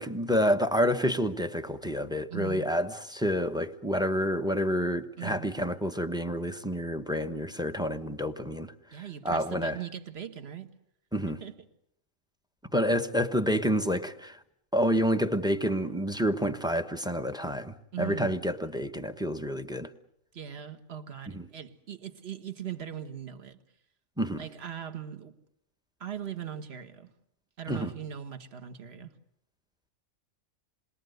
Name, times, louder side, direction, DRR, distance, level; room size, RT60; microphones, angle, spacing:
voice 1, 0.0-8.7 9.2-9.8 11.1-11.4 12.7-14.4 14.7-19.9 21.3-21.5 24.2-24.4 27.7-27.9, equal, 5° right, 0.9 m, -28 dB
voice 2, 2.3-2.7 5.2-5.5 8.9-10.7 11.3-11.6 17.9-18.4 20.3-23.6 24.4-25.4 26.0-27.1 27.6-29.1, right 9 dB, 45° right, 1.7 m, -40 dB
28.0 x 21.5 x 7.9 m
omnidirectional pair, 1.5 m